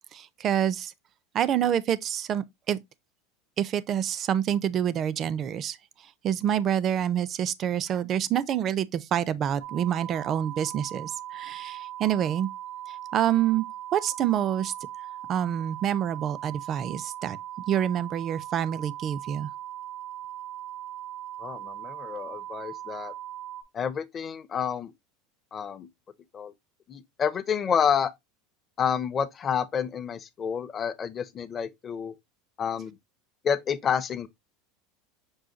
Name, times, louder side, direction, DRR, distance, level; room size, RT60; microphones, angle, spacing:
voice 1, 0.1-0.9 1.3-2.8 3.6-5.8 6.2-12.5 12.9-13.7 13.9-14.7 15.3-17.4 17.7-19.5, right 10 dB, 40° right, 0.4 m, -27 dB
sound 1, 9.6-23.6, right 12 dB, 85° right, 1.0 m, -39 dB
voice 2, 21.4-23.1 23.7-24.9 25.5-25.9 26.3-26.5 26.9-28.1 28.8-32.1 32.6-32.9 33.4-34.3, left 7 dB, 30° left, 0.6 m, -29 dB
6.3 x 2.2 x 3.7 m
supercardioid pair, 120°, 0 cm